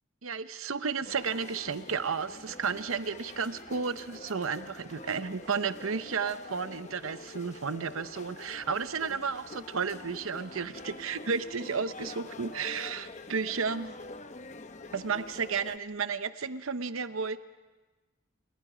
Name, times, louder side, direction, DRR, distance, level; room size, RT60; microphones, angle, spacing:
voice 1, 0.2-13.9 14.9-17.4, right 5 dB, 80° right, 12 dB, 0.9 m, -33 dB
sound 1, 1.0-15.8, left 3 dB, 35° left, 0.8 m, -46 dB
28.0 x 22.5 x 5.1 m, 1.2 s
head